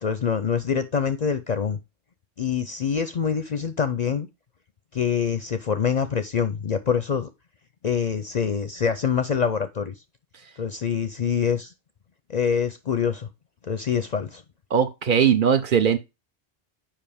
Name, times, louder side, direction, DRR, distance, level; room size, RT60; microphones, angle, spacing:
voice 1, 0.0-1.8 2.4-4.3 4.9-7.3 7.8-9.9 10.6-11.7 12.3-13.3 13.6-14.4, left 7 dB, 50° left, 0.5 m, -25 dB
voice 2, 14.7-16.0, right 8 dB, 55° right, 0.8 m, -19 dB
7.4 x 5.1 x 3.4 m
omnidirectional pair, 1.1 m